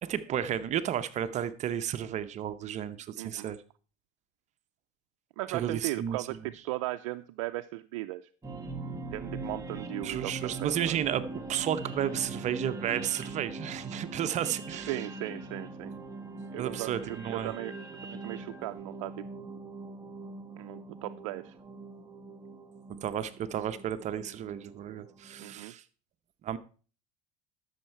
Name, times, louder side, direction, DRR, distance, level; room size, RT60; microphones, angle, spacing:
voice 1, 0.0-3.6 5.5-6.2 10.0-15.0 16.6-17.5 23.0-25.8 26.4-26.6, right 10 dB, 45° right, 0.7 m, -32 dB
voice 2, 3.2-3.5 5.4-8.2 9.1-11.0 14.9-15.9 16.5-16.9 17.3-17.8 18.1-19.3 20.6-21.6 25.4-25.7, right 18 dB, 85° right, 0.4 m, -37 dB
sound 1, 8.4-25.6, right 3 dB, 20° right, 1.6 m, -42 dB
13.0 x 6.5 x 4.5 m
supercardioid pair, 105°, 17 cm